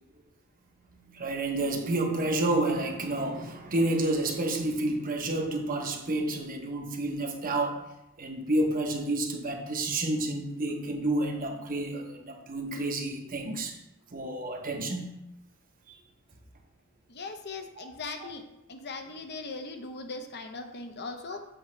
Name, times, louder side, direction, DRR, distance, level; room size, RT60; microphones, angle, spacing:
voice 1, 0.9-7.8 8.2-13.8 14.1-15.1 17.8-17.9, right 2 dB, 40° right, 3 dB, 0.9 m, -30 dB
voice 2, 17.1-18.4 18.7-21.4, left 3 dB, 50° left, 6 dB, 0.8 m, -39 dB
7.8 x 5.5 x 3.2 m, 0.88 s
head